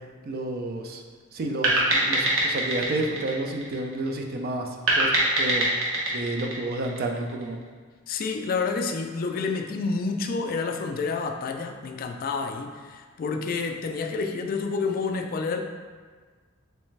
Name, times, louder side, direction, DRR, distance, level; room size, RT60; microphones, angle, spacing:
voice 1, 0.2-1.0 1.3-4.7 5.0-5.1 5.4-5.7 6.1-7.6, right 2 dB, 45° right, 3 dB, 0.4 m, -30 dB
sound 1, 1.6-4.2 4.9-7.4, right 1 dB, 75° right, 0.8 m, -24 dB
voice 2, 8.1-15.6, left 4 dB, 45° left, 4 dB, 0.3 m, -29 dB
3.3 x 3.1 x 3.2 m, 1.5 s
head